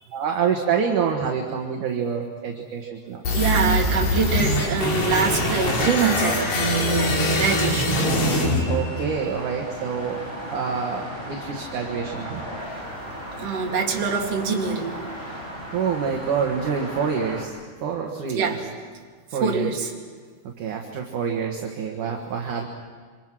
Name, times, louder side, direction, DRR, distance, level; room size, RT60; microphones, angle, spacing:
voice 1, 0.1-3.2 8.7-10.2 10.5-12.4 15.7-17.5 17.8-19.0 19.3-19.7 20.6-22.6, right 6 dB, 60° right, 1 dB, 2.6 m, -27 dB
sound 1, 3.2-9.3, left 1 dB, 45° left, 3.7 m, -23 dB
sound 2, 3.3-17.4, equal, 15° left, 5.0 m, -36 dB
voice 2, 3.3-8.1 13.4-15.0 18.3-18.6 19.4-19.9, right 5 dB, 40° right, 0 dB, 3.1 m, -24 dB
27.0 x 26.0 x 6.1 m, 1.5 s
omnidirectional pair, 4.9 m